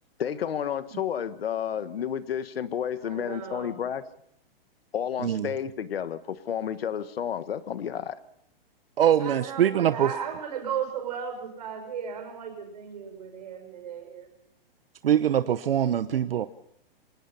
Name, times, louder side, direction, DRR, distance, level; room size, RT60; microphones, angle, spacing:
voice 1, 0.2-4.0 4.9-8.2, left 8 dB, 75° left, 13 dB, 1.4 m, -31 dB
voice 2, 3.0-3.8 9.2-14.3, right 8 dB, 45° right, 5 dB, 6.3 m, -35 dB
voice 3, 9.0-10.1 15.0-16.5, right 10 dB, 70° right, 12 dB, 0.9 m, -23 dB
25.0 x 19.0 x 5.6 m, 0.75 s
hypercardioid pair, 180°, 30 cm